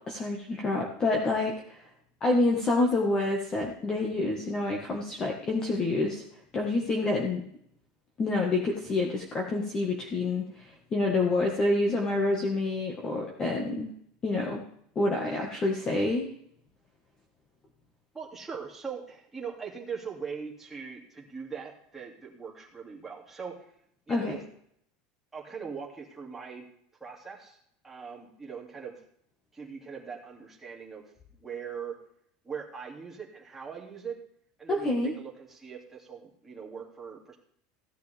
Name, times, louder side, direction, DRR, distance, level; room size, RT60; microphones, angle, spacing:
voice 1, 0.0-1.8 2.2-6.2 6.5-7.4 8.2-13.9 14.2-14.6 14.9-16.3 24.1-24.4 34.7-35.1, left 2 dB, 20° left, 0 dB, 1.5 m, -28 dB
voice 2, 18.1-23.7 24.1-24.4 25.3-26.6 27.0-27.6 27.8-28.9 29.5-31.0 31.3-31.9 32.4-34.2 34.6-37.4, right 6 dB, 5° right, -3 dB, 2.4 m, -41 dB
16.0 x 10.0 x 3.5 m, 0.67 s
supercardioid pair, 165°, 4 cm